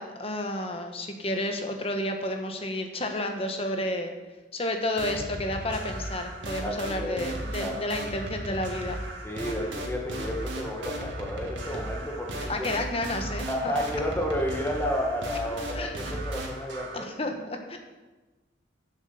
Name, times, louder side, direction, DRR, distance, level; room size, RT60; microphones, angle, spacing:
voice 1, 0.0-4.1 4.5-9.0 12.5-13.7 15.7-16.1 16.9-17.8, left 1 dB, 30° left, 4 dB, 1.1 m, -31 dB
sound 1, 5.0-17.0, right 1 dB, 90° right, 1.8 m, -36 dB
voice 2, 6.6-7.2 7.6-7.7 9.2-12.7 13.5-17.1, equal, 10° left, 0 dB, 1.4 m, -31 dB
7.6 x 7.3 x 7.0 m, 1.2 s
head